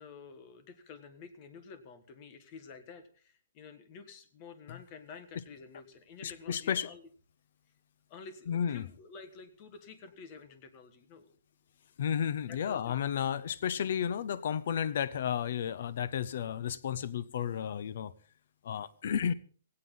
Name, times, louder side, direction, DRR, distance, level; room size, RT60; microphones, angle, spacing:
voice 1, 0.0-7.0 8.1-11.3 12.5-13.0 15.8-16.0, left 5 dB, 20° left, 1.5 m, -50 dB
voice 2, 6.2-6.9 8.5-8.8 12.0-18.1 18.6-19.3, left 8 dB, 45° left, 0.8 m, -32 dB
17.5 x 17.0 x 3.8 m
hypercardioid pair, 180°, 0 cm